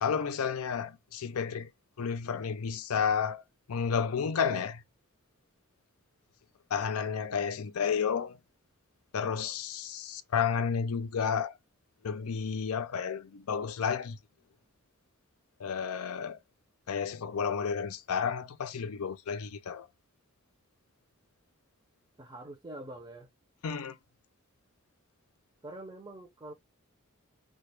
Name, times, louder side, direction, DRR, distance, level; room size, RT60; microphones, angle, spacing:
voice 1, 0.0-1.7 2.0-3.4 3.7-4.8 6.7-8.4 9.1-11.6 12.0-14.2 15.6-16.4 16.9-19.9 23.6-23.9, left 6 dB, 75° left, 0.5 m, -31 dB
voice 2, 22.2-23.3 25.6-26.5, right 1 dB, 20° right, 0.5 m, -45 dB
3.3 x 2.2 x 3.2 m
head